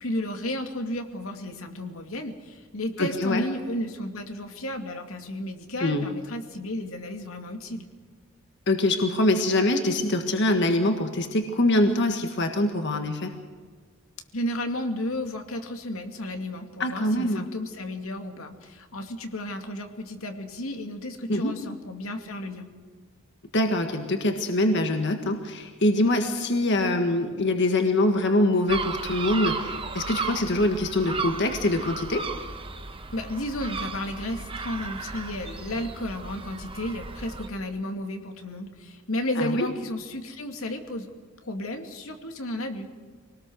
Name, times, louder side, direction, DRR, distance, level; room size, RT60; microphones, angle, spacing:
voice 1, 0.0-7.9 14.3-22.7 33.1-41.1 41.4-42.9, left 1 dB, 90° left, 4 dB, 2.4 m, -33 dB
voice 2, 3.0-3.4 5.8-6.1 8.7-13.3 16.8-17.4 21.3-21.5 23.5-32.3 39.4-39.7, left 1 dB, 60° left, 5 dB, 1.7 m, -24 dB
sound 1, 28.7-37.5, right 4 dB, 25° right, 1.2 m, -34 dB
25.0 x 19.0 x 6.3 m, 1.5 s
head